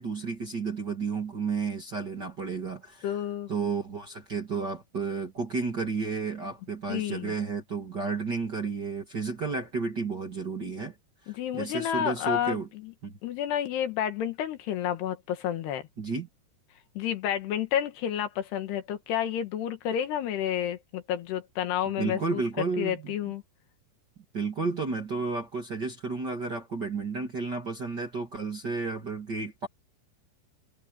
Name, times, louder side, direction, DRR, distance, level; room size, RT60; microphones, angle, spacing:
voice 1, 0.0-3.1 3.5-10.9 11.2-12.7 13.0-13.2 16.0-16.3 22.0-23.1 24.3-29.7, right 4 dB, 35° right, 2.1 m, -32 dB
voice 2, 3.0-3.5 6.9-7.3 11.3-12.9 13.2-15.8 17.0-22.4 22.8-23.4, left 10 dB, 75° left, 3.6 m, -30 dB
omnidirectional pair, 5.0 m